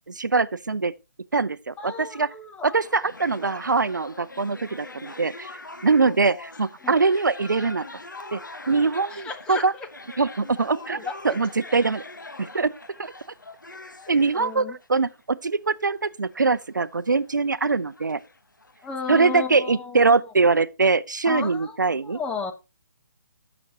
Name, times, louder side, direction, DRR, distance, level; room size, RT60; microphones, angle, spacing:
voice 1, 0.1-0.9 1.3-2.3 2.6-5.5 5.8-7.8 8.3-8.4 8.7-9.7 10.2-12.0 12.5-12.7 13.0-13.1 14.1-18.2 19.1-22.2, right 4 dB, 80° right, 0.5 m, -23 dB
voice 2, 1.8-2.8 6.8-6.9 9.1-9.9 10.9-11.4 14.0-14.8 18.8-20.1 21.2-21.7 22.0-22.5, left 5 dB, 10° left, 0.7 m, -34 dB
sound 1, 2.8-19.5, left 2 dB, 90° left, 1.0 m, -43 dB
15.5 x 5.9 x 2.8 m
figure-of-eight pair, 140°, 10 cm